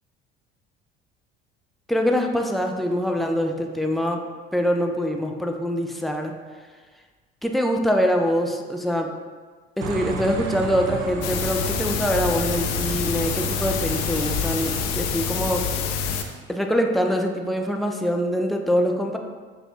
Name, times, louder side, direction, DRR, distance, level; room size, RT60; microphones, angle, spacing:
voice 1, 1.9-4.3 4.5-6.3 7.4-9.1 9.8-15.7 16.5-19.2, equal, ahead, 2 dB, 0.3 m, -24 dB
sound 1, 9.8-14.9, right 4 dB, 60° right, 0.5 m, -34 dB
sound 2, 11.2-16.2, left 6 dB, 55° left, 0.5 m, -26 dB
6.2 x 2.2 x 2.8 m, 1.5 s
figure-of-eight pair, 60°, 31 cm